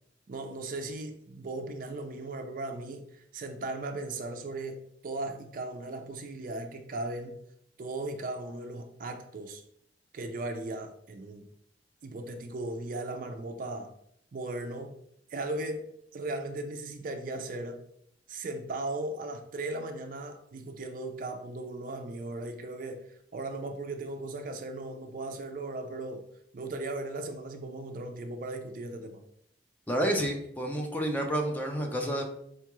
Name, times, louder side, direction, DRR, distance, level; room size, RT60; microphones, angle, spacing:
voice 1, 0.3-7.4 7.8-9.6 10.1-11.4 12.0-13.9 14.3-15.0 15.3-15.9 16.1-17.8 18.3-23.1 23.3-26.3 26.5-29.2, right 2 dB, 50° right, 0.4 m, -37 dB
voice 2, 29.9-32.2, right 1 dB, 10° left, 0.4 m, -29 dB
4.4 x 2.3 x 3.0 m
head